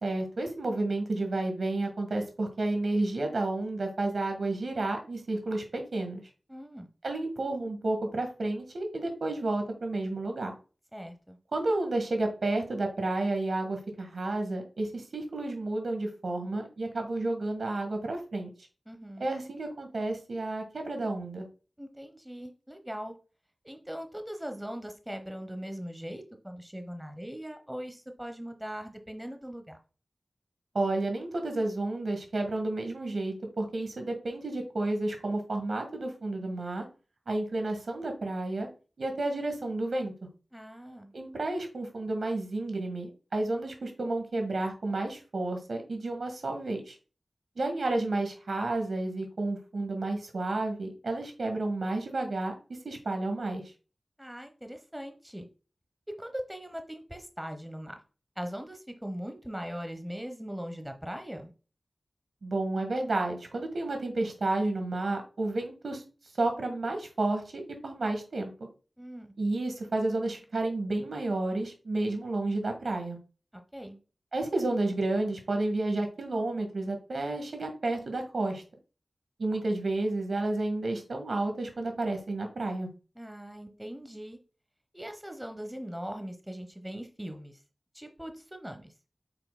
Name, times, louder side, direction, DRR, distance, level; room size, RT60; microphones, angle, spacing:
voice 1, 0.0-6.2 7.0-10.5 11.5-18.5 19.2-21.4 30.7-36.8 37.3-38.7 39.0-40.1 41.1-46.9 47.6-52.5 52.8-53.6 62.4-66.0 66.4-68.5 69.4-73.2 74.3-78.6 79.4-82.9, right 2 dB, 80° right, 4 dB, 1.6 m, -31 dB
voice 2, 6.5-6.9 10.9-11.4 18.9-19.3 21.8-23.1 23.6-29.8 40.5-41.1 54.2-55.5 56.2-58.0 58.4-61.5 69.0-69.3 73.7-74.0 83.1-84.4 84.9-87.6 87.9-88.9, equal, 10° right, 6 dB, 1.0 m, -40 dB
7.8 x 5.8 x 2.2 m, 0.34 s
wide cardioid pair, 70°, 0 cm